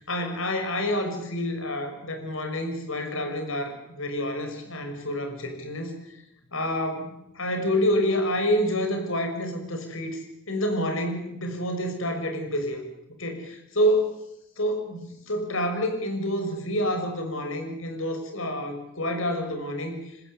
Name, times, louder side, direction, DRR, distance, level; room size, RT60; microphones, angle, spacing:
voice 1, 0.0-5.9 6.5-12.8 13.2-14.1 14.6-20.0, equal, 70° left, 5 dB, 6.5 m, -28 dB
26.0 x 20.5 x 8.4 m, 0.80 s
head